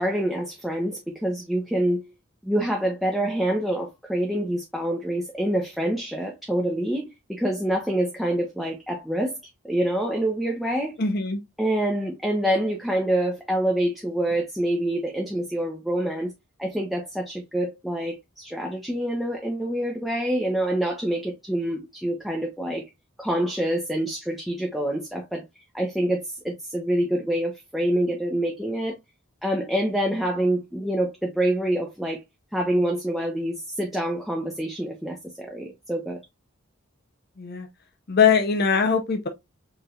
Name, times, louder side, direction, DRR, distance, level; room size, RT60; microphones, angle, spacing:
voice 1, 0.0-2.1 2.4-9.3 9.6-11.0 11.6-16.3 16.6-22.8 23.2-25.4 25.7-29.0 29.4-32.2 32.5-36.2, right 1 dB, ahead, 0.7 m, -26 dB
voice 2, 11.0-11.4 37.4-37.7 38.1-39.3, left 6 dB, 50° left, 0.7 m, -21 dB
4.8 x 3.2 x 2.4 m
head